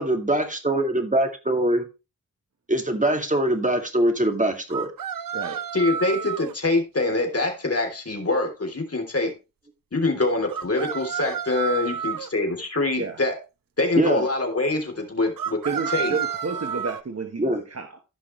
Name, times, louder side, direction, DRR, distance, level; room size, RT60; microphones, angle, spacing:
voice 1, 0.0-1.9 2.7-4.9 14.0-14.2 17.4-17.6, right 1 dB, 25° right, 2.3 m, -23 dB
sound 1, 4.7-6.5 10.5-12.3 15.4-17.0, right 8 dB, 90° right, 0.6 m, -30 dB
voice 2, 5.7-9.3 9.9-13.4 13.8-15.6 15.9-16.2, left 2 dB, 45° left, 3.3 m, -24 dB
voice 3, 15.6-17.9, right 4 dB, 50° right, 1.2 m, -30 dB
15.5 x 5.8 x 3.1 m
wide cardioid pair, 90°, 33 cm